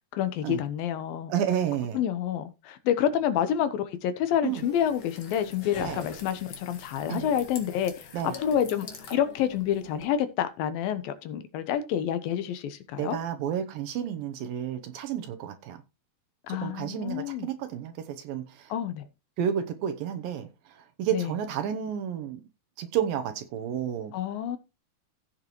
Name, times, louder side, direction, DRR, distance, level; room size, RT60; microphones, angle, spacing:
voice 1, 0.1-1.3 1.9-8.1 8.4-13.2 16.5-17.5 18.7-19.0 21.1-21.3 24.1-24.6, left 9 dB, 75° left, 2.6 m, -28 dB
voice 2, 1.3-2.0 4.4-4.6 5.8-6.0 7.1-7.3 8.1-8.3 13.0-15.8 16.5-18.7 19.4-22.4 22.8-24.1, right 9 dB, 75° right, 2.5 m, -31 dB
sound 1, 4.4-10.1, left 5 dB, 50° left, 2.3 m, -43 dB
16.0 x 6.6 x 3.0 m
omnidirectional pair, 4.5 m